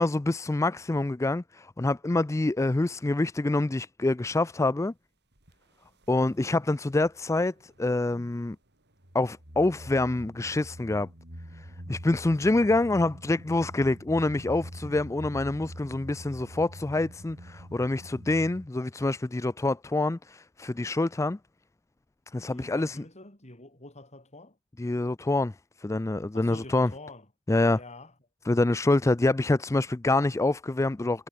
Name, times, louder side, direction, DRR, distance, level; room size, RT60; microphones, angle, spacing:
voice 1, 0.0-4.9 6.1-8.6 9.1-11.1 11.6-21.4 22.3-23.0 24.8-26.9 27.5-27.8 28.5-31.3, left 2 dB, 15° left, 0.4 m, -26 dB
sound 1, 5.4-5.5 6.0-7.2 7.5-8.5 9.0-18.7, equal, 50° right, 6.1 m, -44 dB
voice 2, 22.5-24.6 26.3-27.3 27.7-28.1, left 2 dB, 30° left, 7.3 m, -46 dB
head